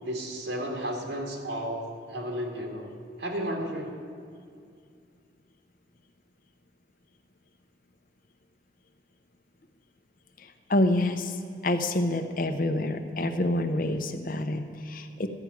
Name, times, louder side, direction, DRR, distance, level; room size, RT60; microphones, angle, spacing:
voice 1, 0.0-2.9 3.2-3.9, equal, 75° right, 1 dB, 2.1 m, -33 dB
voice 2, 10.4-15.3, left 1 dB, 50° left, 8 dB, 0.8 m, -27 dB
13.0 x 6.2 x 9.4 m, 2.3 s
head